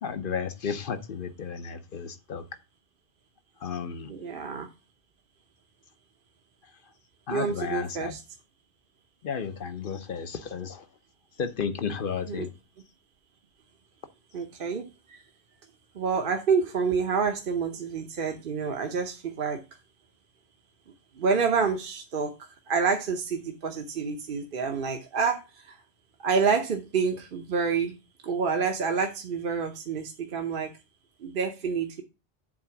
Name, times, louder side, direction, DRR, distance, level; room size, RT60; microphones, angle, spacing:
voice 1, 0.0-2.4 3.6-4.1 6.6-6.7 7.3-8.1 9.2-10.9 11.4-12.5, left 6 dB, 60° left, 1.0 m, -33 dB
voice 2, 4.1-4.7 7.3-8.2 12.3-12.4 14.3-15.2 15.9-19.6 21.2-22.3 22.7-25.7 26.2-28.0 28.2-30.7 31.2-32.0, right 5 dB, 60° right, 1.1 m, -28 dB
7.6 x 3.7 x 5.8 m
omnidirectional pair, 1.1 m